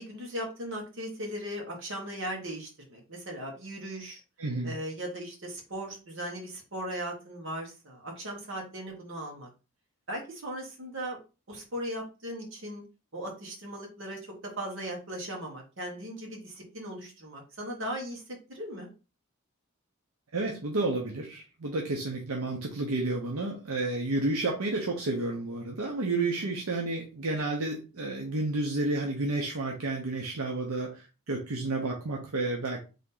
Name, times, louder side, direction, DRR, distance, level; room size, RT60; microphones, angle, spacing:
voice 1, 0.0-4.2 4.6-9.5 10.1-11.2 11.5-12.8 13.1-18.2 18.5-18.9 26.4-26.5, equal, 55° right, 0 dB, 1.4 m, -38 dB
voice 2, 4.4-4.8 20.3-32.8, right 2 dB, 80° right, 0 dB, 0.8 m, -31 dB
3.7 x 2.8 x 3.8 m, 0.31 s
head